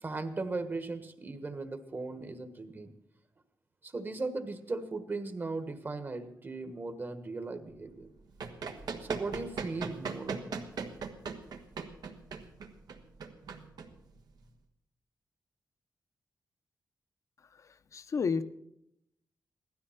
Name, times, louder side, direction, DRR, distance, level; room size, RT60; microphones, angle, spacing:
voice 1, 0.0-2.9 3.8-8.1 9.0-10.5, right 3 dB, 30° right, 9 dB, 1.3 m, -37 dB
Run, 8.0-14.5, right 5 dB, 80° right, 1.5 m, -40 dB
voice 2, 17.6-18.4, left 5 dB, 50° left, 12 dB, 0.7 m, -32 dB
16.5 x 13.0 x 5.8 m, 0.77 s
wide cardioid pair, 160°, 7 cm